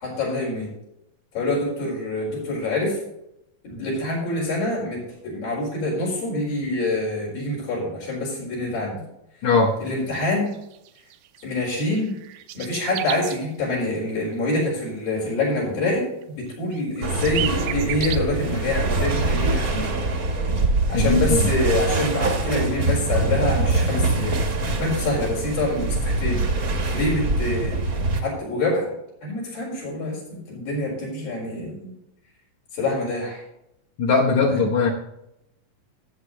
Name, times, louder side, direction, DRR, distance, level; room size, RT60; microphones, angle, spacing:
voice 1, 0.0-0.7 1.3-3.0 3.6-9.0 9.8-10.5 11.4-12.1 12.5-20.0 20.9-24.4 24.7-26.4 26.9-27.8 28.2-28.9 29.2-31.9 32.7-33.4 34.5-34.7, left 2 dB, 85° left, -4 dB, 6.4 m, -26 dB
voice 2, 9.4-9.7 20.9-21.3 34.0-34.9, left 4 dB, 65° left, -1 dB, 2.1 m, -19 dB
sound 1, 10.1-10.2 10.5-13.4 15.8-15.9 16.2-16.3 16.5-18.2, right 12 dB, 85° right, 2.4 m, -33 dB
sound 2, 17.0-28.2, right 2 dB, 55° right, 1.0 m, -24 dB
16.5 x 7.7 x 3.2 m, 0.83 s
omnidirectional pair, 4.0 m